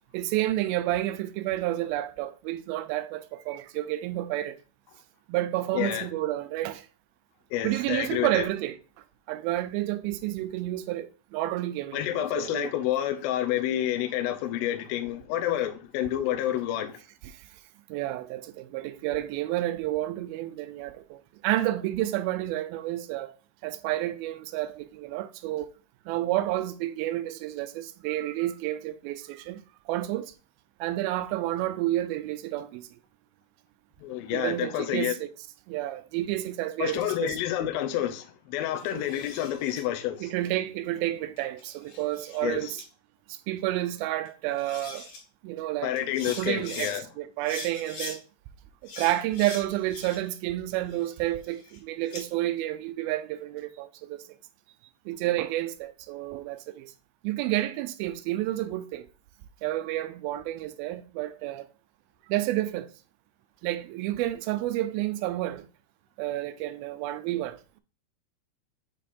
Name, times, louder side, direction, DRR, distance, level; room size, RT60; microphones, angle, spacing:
voice 1, 0.1-4.6 5.3-6.9 7.6-8.8 9.3-12.7 17.3-17.5 17.9-23.3 23.6-25.7 26.1-29.6 29.9-30.3 30.8-32.9 34.3-35.3 35.7-37.4 38.9-39.0 40.2-42.7 43.3-45.1 45.4-45.9 46.4-48.2 49.0-54.2 55.1-56.9 57.2-59.1 59.6-61.7 62.3-62.9 63.6-65.7 66.2-67.8, right 15 dB, 85° right, 2.1 m, -30 dB
voice 2, 5.7-6.1 7.5-8.5 11.9-17.0 34.0-35.1 36.8-40.3 42.4-42.8 45.8-47.1, left 12 dB, 80° left, 2.3 m, -29 dB
sound 1, 38.8-39.8 41.4-42.4 42.8-42.9 44.3-44.4 44.6-45.2 46.0-47.0 47.4-48.2 48.9-50.4 50.7-52.2, left 3 dB, 60° left, 3.1 m, -42 dB
7.3 x 3.3 x 4.1 m
omnidirectional pair, 4.7 m